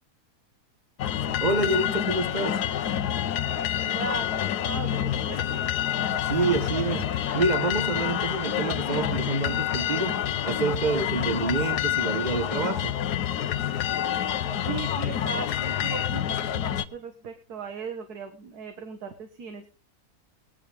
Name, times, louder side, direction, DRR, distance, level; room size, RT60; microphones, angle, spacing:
sound 1, 1.0-16.8, left 10 dB, 85° left, 1.4 m, -28 dB
voice 1, 1.4-2.7 6.2-13.0, right 3 dB, 35° right, 1.0 m, -28 dB
voice 2, 3.4-5.9 14.6-19.7, right 5 dB, 75° right, 1.9 m, -38 dB
19.0 x 11.0 x 3.4 m
omnidirectional pair, 1.7 m